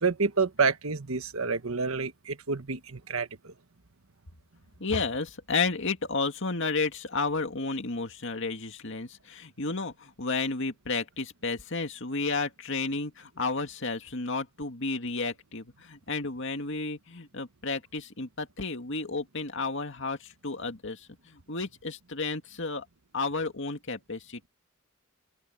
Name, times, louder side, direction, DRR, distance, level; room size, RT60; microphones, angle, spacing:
voice 1, 0.0-3.5, right 4 dB, 75° right, 1.3 m, -28 dB
voice 2, 4.8-22.9 23.1-24.5, left 3 dB, 60° left, 2.3 m, -32 dB
head